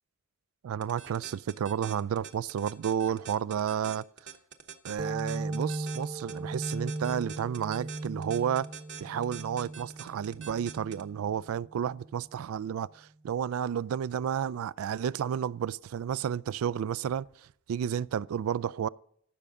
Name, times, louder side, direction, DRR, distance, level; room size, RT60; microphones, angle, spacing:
voice 1, 0.6-4.0 4.8-8.7 9.0-17.3 17.7-18.9, right 8 dB, 80° right, 0.3 m, -31 dB
sound 1, 0.8-11.0, right 7 dB, 60° right, 1.0 m, -44 dB
sound 2, 5.0-12.3, right 2 dB, 25° right, 0.6 m, -38 dB
15.0 x 6.9 x 3.7 m
head